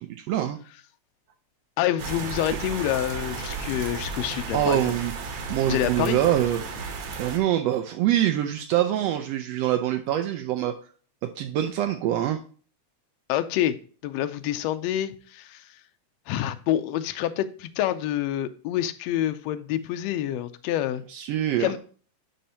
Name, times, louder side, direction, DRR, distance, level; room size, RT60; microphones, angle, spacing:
voice 1, 0.2-0.6 2.5-2.6 4.5-5.1 5.5-6.6 7.2-10.7 11.2-12.4 21.1-21.8, right 12 dB, 80° right, 1.5 m, -24 dB
voice 2, 1.8-5.0 5.7-6.2 13.3-13.7 14.0-15.6 16.3-21.0 21.6-21.8, left 12 dB, 80° left, 1.6 m, -27 dB
sound 1, 2.0-7.4, right 4 dB, 65° right, 1.9 m, -34 dB
11.0 x 4.3 x 2.8 m
omnidirectional pair, 3.4 m